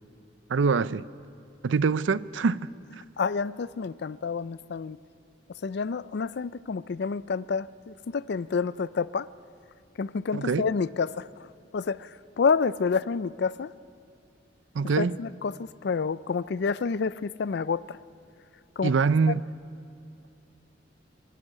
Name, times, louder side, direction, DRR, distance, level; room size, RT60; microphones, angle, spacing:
voice 1, 0.5-1.1 1.6-2.7 10.3-10.7 14.7-15.2 18.8-19.4, right 5 dB, 80° right, 0.5 m, -24 dB
voice 2, 3.2-5.0 5.6-9.3 10.0-11.5 11.7-13.7 15.0-18.0 18.8-18.9 19.3-19.4, left 5 dB, 60° left, 0.4 m, -29 dB
24.0 x 12.0 x 10.0 m
head